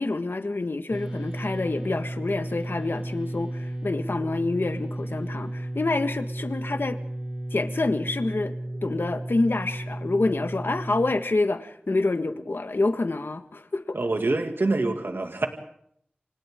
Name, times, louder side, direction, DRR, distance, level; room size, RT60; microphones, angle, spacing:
voice 1, 0.0-7.0 7.5-8.5 8.8-14.0, left 2 dB, 80° left, 1.6 m, -27 dB
sound 1, 0.9-11.1, right 1 dB, 25° right, 3.0 m, -34 dB
voice 2, 13.9-15.5, right 2 dB, 85° right, 2.3 m, -25 dB
30.0 x 26.0 x 3.8 m
wide cardioid pair, 40°, 4 cm